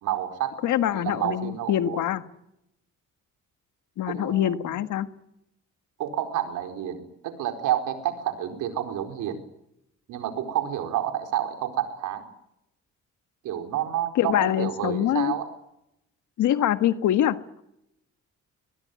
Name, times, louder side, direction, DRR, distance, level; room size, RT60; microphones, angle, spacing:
voice 1, 0.0-0.5 0.9-2.0 4.1-4.6 6.0-9.4 10.1-12.3 13.4-15.5, right 11 dB, 90° right, 7 dB, 4.5 m, -29 dB
voice 2, 0.6-2.2 4.0-5.1 14.2-15.4 16.4-17.6, left 11 dB, 80° left, 11 dB, 1.7 m, -24 dB
23.5 x 20.0 x 9.5 m, 0.82 s
cardioid pair, 90°, 30 cm